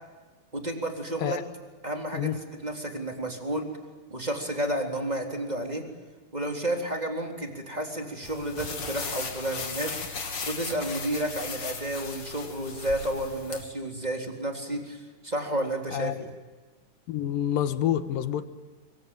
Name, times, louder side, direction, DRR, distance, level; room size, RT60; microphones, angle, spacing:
voice 1, 0.5-1.4 1.8-3.7 4.1-5.8 6.3-10.0 10.4-16.3, right 1 dB, 10° right, 3 dB, 3.4 m, -31 dB
sound 1, 8.2-13.6, left 4 dB, 40° left, 3.3 m, -37 dB
voice 2, 17.1-18.5, left 11 dB, 75° left, 12 dB, 2.9 m, -27 dB
25.5 x 24.5 x 9.1 m, 1.3 s
omnidirectional pair, 4.1 m